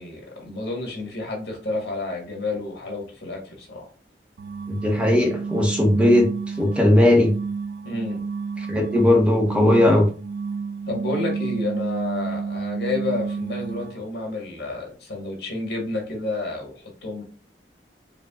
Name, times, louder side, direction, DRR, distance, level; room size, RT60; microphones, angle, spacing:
voice 1, 0.0-3.9 7.8-8.2 10.9-17.2, left 2 dB, 70° left, 0 dB, 1.7 m, -30 dB
sound 1, 4.4-14.1, right 5 dB, 70° right, 0.3 m, -30 dB
voice 2, 4.7-6.3 6.6-7.3 8.7-10.1, left 1 dB, 5° right, 1 dB, 0.9 m, -18 dB
4.8 x 2.3 x 3.6 m, 0.38 s
head